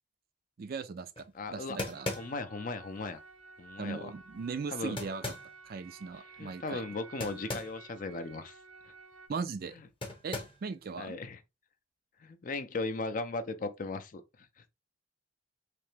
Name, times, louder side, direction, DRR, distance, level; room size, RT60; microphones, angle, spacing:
voice 1, 0.6-2.1 3.8-5.2 5.6-6.9 9.3-9.8 10.2-11.2, right 5 dB, 45° right, 0.3 m, -38 dB
sound 1, 1.2-1.3 1.8-2.6 5.0-5.5 7.2-7.8 8.1-8.2 10.0-10.7, left 2 dB, 25° left, 0.9 m, -38 dB
voice 2, 1.3-1.8 2.2-3.2 3.6-4.1 4.7-5.0 6.4-8.6 11.0-11.4 12.2-14.2, left 3 dB, 40° left, 0.5 m, -37 dB
sound 2, 1.9-9.3, right 4 dB, 75° right, 0.6 m, -53 dB
3.3 x 2.8 x 3.2 m
head